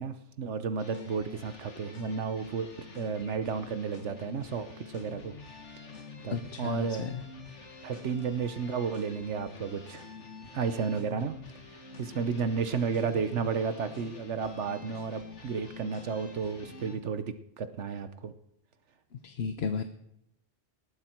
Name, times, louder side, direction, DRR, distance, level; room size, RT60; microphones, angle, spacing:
voice 1, 0.0-5.3 6.2-7.1 7.8-10.0 10.5-11.4 12.0-18.3, right 6 dB, 80° right, 10 dB, 1.2 m, -32 dB
sound 1, 0.8-17.0, left 4 dB, 85° left, 2.2 m, -47 dB
voice 2, 6.3-7.2 19.2-19.8, left 6 dB, 65° left, 8 dB, 1.1 m, -33 dB
19.5 x 14.0 x 4.5 m, 0.82 s
omnidirectional pair, 1.2 m